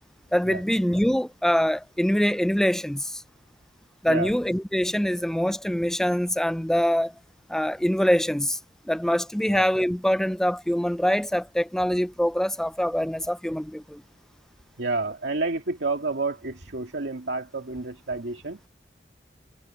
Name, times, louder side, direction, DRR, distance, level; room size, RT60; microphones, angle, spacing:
voice 1, 0.3-3.2 4.0-7.1 7.5-8.6 8.9-14.0, equal, 5° left, 0.4 m, -24 dB
voice 2, 14.8-18.6, right 3 dB, 80° right, 2.2 m, -30 dB
head